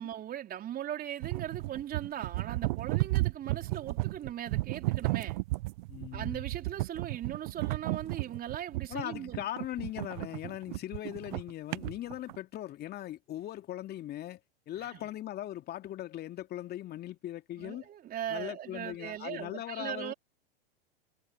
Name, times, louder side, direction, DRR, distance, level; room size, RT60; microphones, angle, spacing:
voice 1, 0.0-5.4 6.1-9.4 14.8-15.0 17.6-20.1, right 11 dB, 30° right, 4.3 m, -39 dB
sound 1, 1.2-12.4, right 21 dB, 50° right, 1.0 m, -33 dB
voice 2, 5.9-6.4 8.9-14.4 14.7-17.9 18.3-20.1, left 13 dB, 35° left, 2.6 m, -39 dB
figure-of-eight pair, 90°, 29 cm